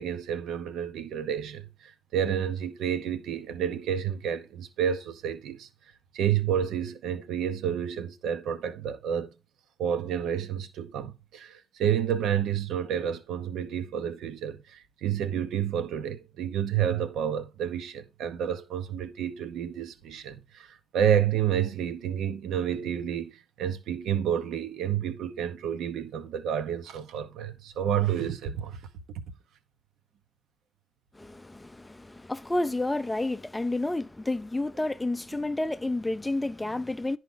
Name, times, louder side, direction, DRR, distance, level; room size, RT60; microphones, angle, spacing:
voice 1, 0.0-5.7 6.1-9.3 9.8-28.8, right 9 dB, 80° right, 1.0 m, -30 dB
voice 2, 31.1-37.2, left 2 dB, 15° left, 0.4 m, -30 dB
10.5 x 4.9 x 3.8 m
cardioid pair, 90°, 0 cm